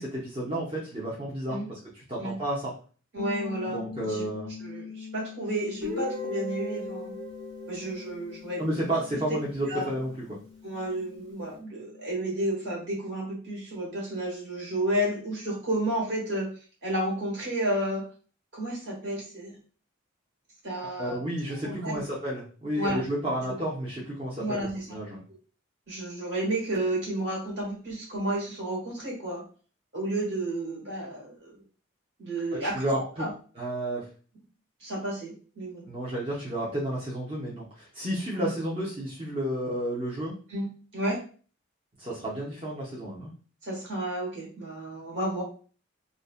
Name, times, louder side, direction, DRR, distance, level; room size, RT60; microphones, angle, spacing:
voice 1, 0.0-2.7 3.7-4.5 8.6-10.4 21.0-25.2 32.6-33.3 33.6-34.1 35.9-40.3 42.0-43.3, right 1 dB, 25° right, -7 dB, 0.5 m, -31 dB
voice 2, 3.1-4.3 4.6-7.2 7.7-8.6 9.7-9.9 10.6-16.5 16.8-18.0 18.5-19.5 20.6-21.2 21.5-22.0 22.7-23.0 23.5-23.6 24.4-25.0 25.9-29.4 29.9-31.6 32.2-32.9 33.2-33.3 34.8-35.9 38.3-38.5 40.5-41.2 43.6-45.4, right 1 dB, 60° right, -4 dB, 1.3 m, -31 dB
sound 1, 3.2-12.9, left 6 dB, 40° left, 0.4 m, -44 dB
Guitar, 5.8-9.6, left 1 dB, 80° right, 1.1 m, -38 dB
2.6 x 2.0 x 2.4 m, 0.39 s
head